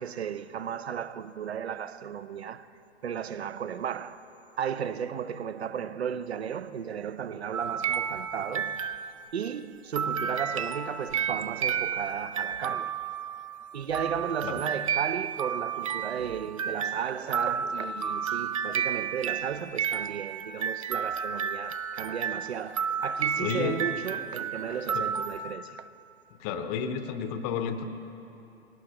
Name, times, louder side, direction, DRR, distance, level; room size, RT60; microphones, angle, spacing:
voice 1, 0.0-2.7 3.0-4.2 4.6-8.8 9.3-13.0 13.7-25.9, right 8 dB, 65° right, 0.7 m, -34 dB
sound 1, 7.5-9.4 10.0-25.5, right 7 dB, 30° right, 0.4 m, -32 dB
voice 2, 23.4-23.8 24.9-25.1 26.3-27.8, left 7 dB, 25° left, 0.8 m, -32 dB
20.5 x 18.0 x 2.9 m
figure-of-eight pair, 115°, 34 cm